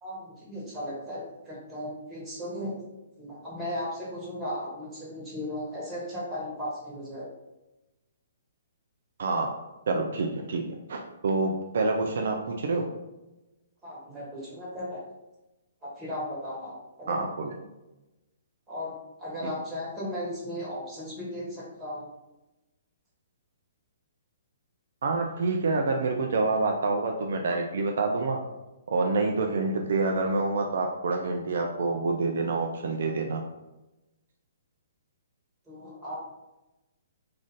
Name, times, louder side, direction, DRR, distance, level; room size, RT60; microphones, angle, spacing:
voice 1, 0.0-2.8 3.2-7.3 13.8-15.0 15.8-16.7 17.0-17.2 18.7-22.1 25.8-26.0 35.7-36.2, left 1 dB, 15° right, -7 dB, 1.2 m, -36 dB
voice 2, 9.9-10.6 10.9-12.9 17.1-17.5 19.4-19.5 25.0-28.4 28.9-33.4, right 3 dB, 60° right, 2 dB, 0.3 m, -27 dB
2.5 x 2.5 x 3.5 m, 1.0 s
figure-of-eight pair, 125°, 0 cm